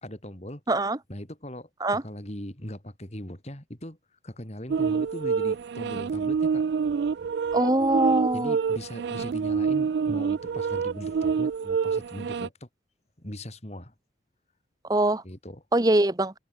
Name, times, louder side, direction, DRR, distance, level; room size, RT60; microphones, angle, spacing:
voice 1, 0.0-0.6 1.1-4.0 4.2-6.6 8.3-12.7 13.2-13.9 15.2-15.6, left 1 dB, 35° left, 3.3 m, -39 dB
voice 2, 0.7-1.0 1.8-2.0 7.5-8.6 14.9-15.2 15.7-16.3, right 2 dB, 20° right, 0.9 m, -22 dB
sound 1, 4.7-12.5, right 6 dB, 60° right, 0.3 m, -27 dB
open air
head